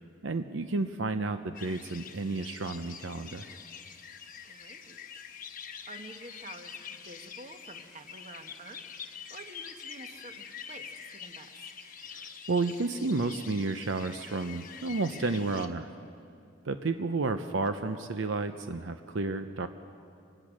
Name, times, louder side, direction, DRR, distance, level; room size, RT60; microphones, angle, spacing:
voice 1, 0.2-3.5 12.1-15.9 16.6-19.7, right 3 dB, 65° right, 9 dB, 0.7 m, -31 dB
sound 1, 1.5-15.7, left 7 dB, 40° left, 1.1 m, -46 dB
voice 2, 4.4-5.3 5.7-8.8 9.1-11.9, right 2 dB, 35° right, 6 dB, 1.2 m, -49 dB
25.5 x 17.0 x 6.3 m, 2.4 s
head